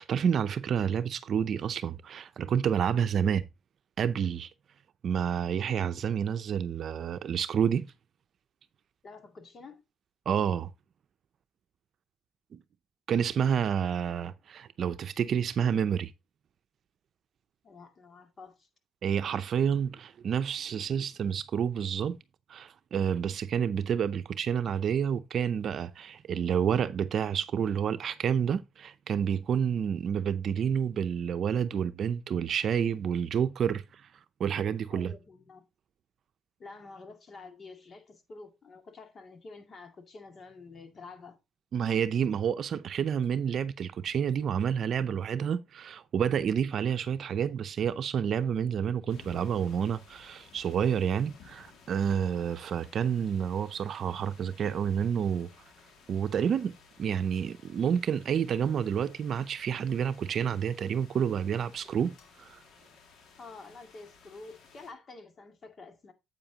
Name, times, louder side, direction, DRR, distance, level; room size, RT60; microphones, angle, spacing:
voice 1, 0.0-3.4 4.0-4.5 5.0-7.9 10.3-10.7 13.1-16.1 19.0-22.2 22.5-34.1 34.4-35.1 41.7-55.5 56.1-56.7 57.0-62.6, right 8 dB, 60° right, 0.6 m, -29 dB
voice 2, 9.0-9.8 17.6-18.7 34.9-35.7 36.6-41.4 63.4-66.1, left 3 dB, 45° left, 2.2 m, -48 dB
sound 1, 49.1-64.9, left 5 dB, 70° left, 2.3 m, -57 dB
8.7 x 8.1 x 2.8 m
cardioid pair, 90°, 0 cm